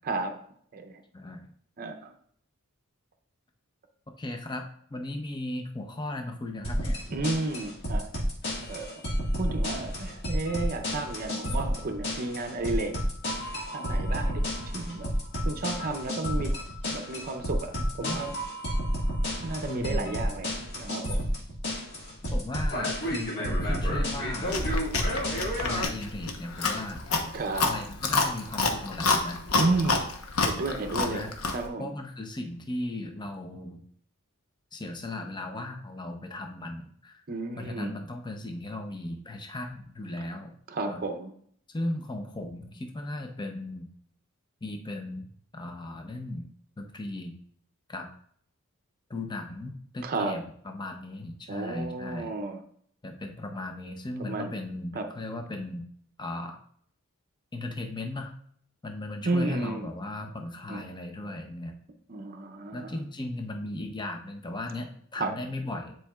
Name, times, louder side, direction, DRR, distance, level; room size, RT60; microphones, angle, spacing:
voice 1, 0.0-0.4 0.7-1.0 1.8-2.1 7.1-8.1 8.7-8.9 9.3-13.0 13.7-15.1 15.5-16.6 16.9-18.4 19.4-20.5 20.8-21.2 27.3-27.7 29.6-30.0 30.4-31.9 37.3-37.9 40.7-41.3 50.0-50.4 51.5-52.6 54.2-54.5 54.9-55.1 59.2-59.9 60.7-60.9 62.1-62.9 65.2-65.3, right 3 dB, 45° right, 6 dB, 0.6 m, -32 dB
voice 2, 1.1-1.5 4.2-4.6 4.9-7.0 18.0-18.2 19.7-20.2 22.3-24.8 25.6-27.0 27.6-29.4 31.0-31.3 31.8-33.8 34.7-37.2 37.6-40.5 40.9-41.0 41.7-43.9 44.6-45.3 45.5-46.4 46.8-47.3 47.9-48.1 49.1-52.4 53.0-55.9 56.2-56.6 57.5-58.3 58.8-61.8 62.7-66.0, left 2 dB, 20° left, 4 dB, 0.6 m, -37 dB
sound 1, 6.6-25.8, equal, 50° left, 1.7 m, -30 dB
Chewing mastication, 24.5-31.7, left 3 dB, 75° left, 0.9 m, -28 dB
10.0 x 4.5 x 2.3 m, 0.63 s
head